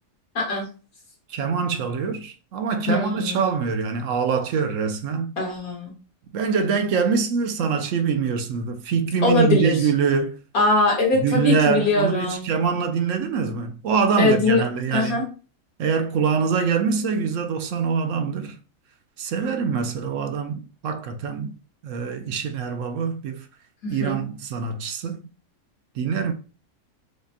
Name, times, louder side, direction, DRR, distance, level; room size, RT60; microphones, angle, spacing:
voice 1, 0.4-0.7 2.9-3.4 5.4-5.9 9.2-9.7 10.5-12.5 14.2-14.6 14.9-15.2 23.8-24.2, left 3 dB, 90° left, 1.9 m, -21 dB
voice 2, 1.3-5.3 6.3-10.4 11.2-15.2 15.8-18.6 19.2-21.5 21.8-23.4 23.9-25.2 26.0-26.3, right 6 dB, 70° right, 0.9 m, -24 dB
4.9 x 2.1 x 2.7 m
omnidirectional pair, 1.5 m